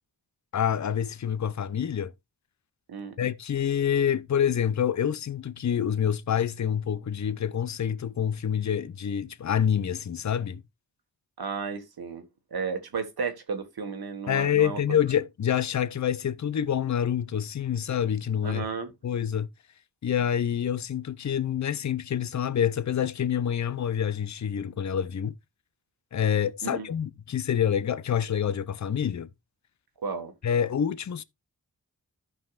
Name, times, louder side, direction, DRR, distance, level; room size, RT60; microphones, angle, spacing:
voice 1, 0.5-2.1 3.2-10.6 14.3-18.7 19.0-19.5 20.0-25.4 26.1-29.3 30.4-31.2, left 9 dB, 50° left, 0.6 m, -27 dB
voice 2, 11.4-12.2 12.5-15.0 18.4-18.9 26.6-26.9 30.0-30.3, right 5 dB, 85° right, 1.5 m, -33 dB
14.0 x 5.5 x 2.4 m
cardioid pair, 60°, 37 cm